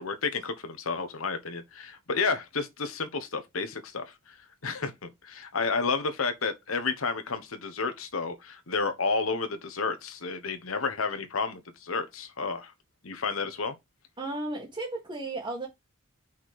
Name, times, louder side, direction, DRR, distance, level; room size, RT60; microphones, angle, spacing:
voice 1, 0.0-4.4 4.6-12.7 13.0-13.8, left 4 dB, 75° left, 1.2 m, -31 dB
voice 2, 14.2-15.7, right 2 dB, 25° right, 1.8 m, -34 dB
5.7 x 4.3 x 4.8 m
head